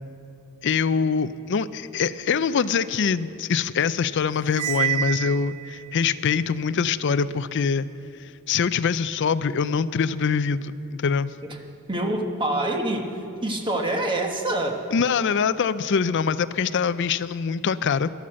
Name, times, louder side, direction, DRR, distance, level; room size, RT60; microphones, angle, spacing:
voice 1, 0.6-7.9 8.5-11.3 14.9-18.1, left 6 dB, 55° left, 14 dB, 0.4 m, -24 dB
Cymbal, 4.5-5.9, right 11 dB, 85° right, 0.4 m, -28 dB
voice 2, 11.9-14.9, right 1 dB, 20° right, 3 dB, 1.3 m, -26 dB
13.0 x 12.0 x 7.5 m, 2.6 s
head